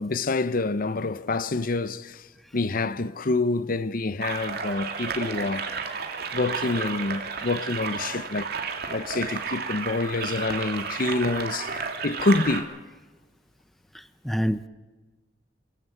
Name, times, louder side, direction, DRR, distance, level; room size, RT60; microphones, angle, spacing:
voice 1, 0.0-2.2 2.5-5.7 6.3-8.5 8.9-12.7, left 3 dB, 50° left, 0.7 m, -27 dB
sound 1, 4.2-12.6, right 5 dB, 60° right, 2.6 m, -32 dB
voice 2, 13.9-14.7, equal, ahead, 0.6 m, -27 dB
27.5 x 15.5 x 8.0 m
head